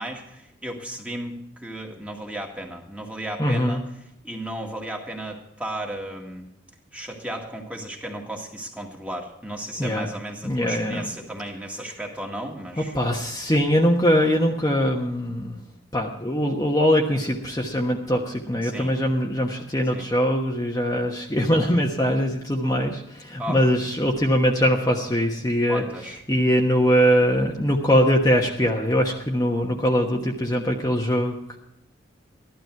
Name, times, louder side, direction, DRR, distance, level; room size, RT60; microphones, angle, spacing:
voice 1, 0.0-3.8 4.2-6.5 6.9-13.0 18.6-18.9 19.9-20.1 23.4-23.6 25.7-26.2, right 1 dB, 5° right, 1 dB, 2.0 m, -34 dB
voice 2, 3.4-3.8 9.8-10.1 10.4-11.1 12.9-15.6 15.9-25.8 26.3-31.6, equal, 20° left, -1 dB, 1.2 m, -22 dB
15.0 x 12.5 x 4.6 m, 0.83 s
head